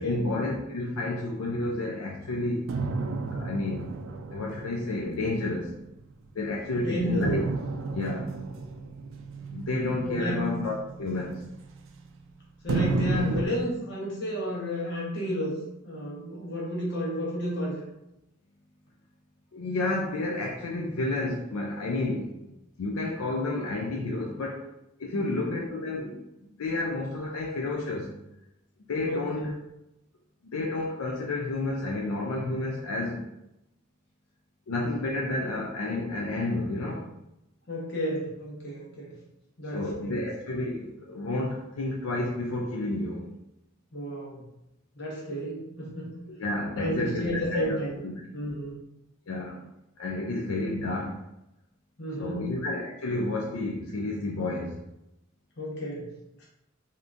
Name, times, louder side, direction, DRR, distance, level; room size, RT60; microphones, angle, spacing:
voice 1, 0.0-2.6 3.3-3.9 4.3-5.7 6.3-7.4 7.9-8.3 9.5-11.4 19.5-22.5 22.8-24.7 25.0-28.1 28.9-29.6 30.5-33.2 34.7-37.1 39.7-43.3 46.3-47.8 48.0-48.2 49.3-49.6 50.0-51.2 52.2-54.8, left 2 dB, 90° left, -1 dB, 0.4 m, -30 dB
sound 1, 2.7-6.4 7.2-12.2 12.7-13.4, right 3 dB, 65° right, 0.3 m, -33 dB
voice 2, 6.7-7.4 10.1-10.5 12.6-15.6 15.8-17.8 25.1-25.2 29.0-29.6 37.7-39.1 39.6-40.2 43.9-44.4 44.9-46.1 46.8-48.0 48.3-48.7 52.0-52.5 55.6-56.1 56.4-56.5, equal, 55° left, -5 dB, 1.1 m, -32 dB
3.4 x 2.8 x 2.5 m, 0.88 s
head